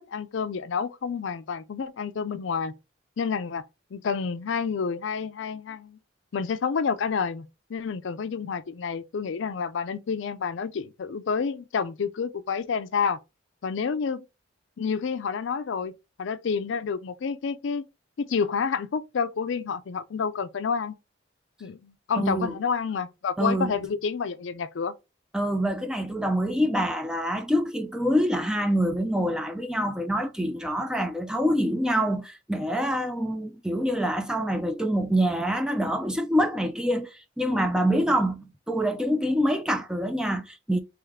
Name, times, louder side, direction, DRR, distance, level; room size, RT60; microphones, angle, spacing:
voice 1, 0.1-2.7 3.2-3.6 3.9-6.0 6.3-7.4 7.7-13.2 13.6-14.2 14.8-17.9 18.2-20.9 21.6-24.9, left 5 dB, 65° left, 0.4 m, -29 dB
voice 2, 22.2-22.5 23.4-23.7 25.3-40.8, equal, 5° right, 0.4 m, -26 dB
3.5 x 3.1 x 3.5 m
head